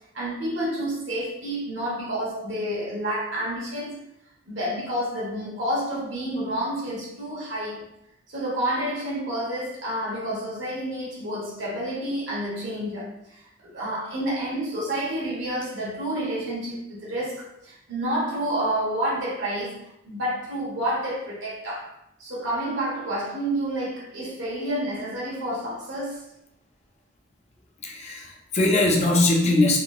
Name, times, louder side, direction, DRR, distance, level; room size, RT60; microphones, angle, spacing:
voice 1, 0.1-4.0 4.5-7.8 8.3-13.4 13.7-19.8 20.0-21.9 22.2-26.3, right 1 dB, 75° right, -5 dB, 1.1 m, -29 dB
voice 2, 27.8-29.8, left 2 dB, 35° left, 0 dB, 0.4 m, -21 dB
3.5 x 2.1 x 2.3 m, 0.79 s
head